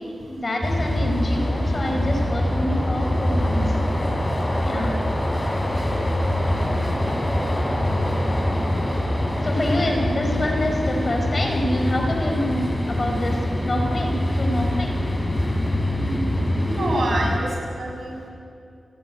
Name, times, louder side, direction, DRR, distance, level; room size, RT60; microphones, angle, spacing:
voice 1, 0.3-4.0 4.6-5.0 9.4-14.9, left 1 dB, 30° left, 2 dB, 4.7 m, -26 dB
sound 1, 0.6-17.4, left 1 dB, 15° left, 4.0 m, -24 dB
voice 2, 16.0-17.5 17.8-18.2, right 1 dB, 50° right, 0 dB, 7.1 m, -27 dB
29.5 x 19.5 x 9.3 m, 2.5 s
wide cardioid pair, 170°, 0 cm